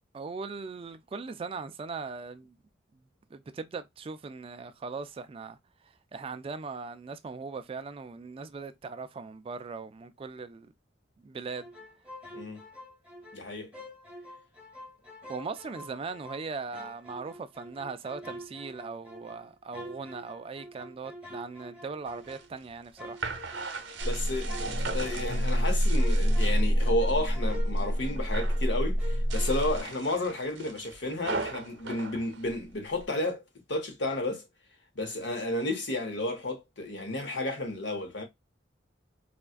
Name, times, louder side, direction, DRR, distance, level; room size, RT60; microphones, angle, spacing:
voice 1, 0.1-2.6 3.3-5.6 6.1-10.7 11.2-11.7 15.3-23.2, right 4 dB, 30° right, 0.3 m, -39 dB
sound 1, 11.6-13.4 13.7-16.4 16.7-22.6 23.0-28.7 29.0-29.8, left 1 dB, 10° right, 1.0 m, -47 dB
voice 2, 13.3-13.7 24.0-24.5 24.9-34.4 34.9-38.2, left 2 dB, 70° left, 1.1 m, -32 dB
sound 2, 22.1-27.0 27.3-27.9 28.2-28.7 29.2-33.1, right 4 dB, 90° right, 0.7 m, -39 dB
sound 3, 24.0-29.8, equal, 50° left, 0.8 m, -27 dB
4.2 x 2.3 x 2.4 m
head